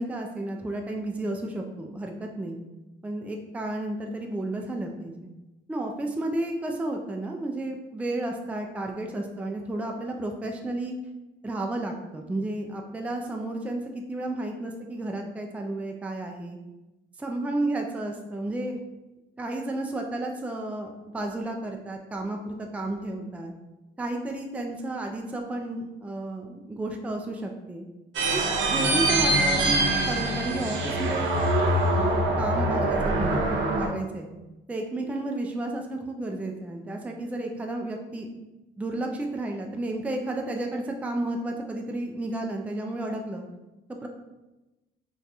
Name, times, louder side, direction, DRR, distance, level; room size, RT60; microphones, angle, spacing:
voice 1, 0.0-2.6 3.0-5.1 5.7-10.9 11.4-16.6 17.2-18.8 19.4-23.5 24.0-27.9 28.3-31.3 31.9-34.3 34.7-38.3 38.8-43.4 44.0-44.1, right 2 dB, 5° right, 2 dB, 0.3 m, -32 dB
sound 1, 28.1-33.9, right 1 dB, 75° right, 0.7 m, -24 dB
2.5 x 2.3 x 4.0 m, 1.0 s
cardioid pair, 90°, 20 cm